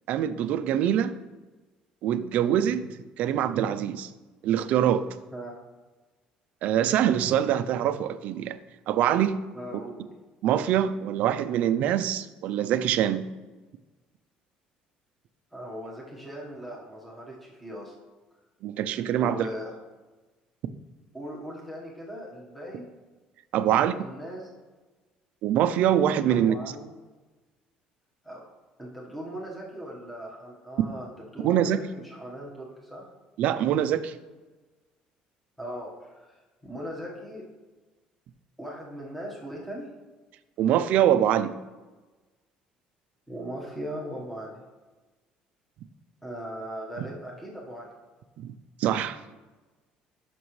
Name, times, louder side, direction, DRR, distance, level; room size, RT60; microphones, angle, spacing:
voice 1, 0.1-1.1 2.0-2.8 3.2-4.1 4.4-5.1 6.6-8.6 8.9-9.4 10.4-13.3 18.6-19.5 23.5-23.9 25.4-26.6 31.4-31.8 33.4-34.1 40.6-41.5 48.4-48.5 48.8-49.2, right 10 dB, 60° right, 13 dB, 0.4 m, -24 dB
voice 2, 9.5-10.0 15.5-17.9 19.2-19.7 21.1-22.9 23.7-24.5 26.3-26.9 28.2-28.4 28.8-33.1 35.6-37.5 38.6-39.9 43.3-44.5 46.2-47.9, equal, 5° left, -3 dB, 1.3 m, -39 dB
12.5 x 6.0 x 3.2 m, 1.2 s
cardioid pair, 160°, 3 cm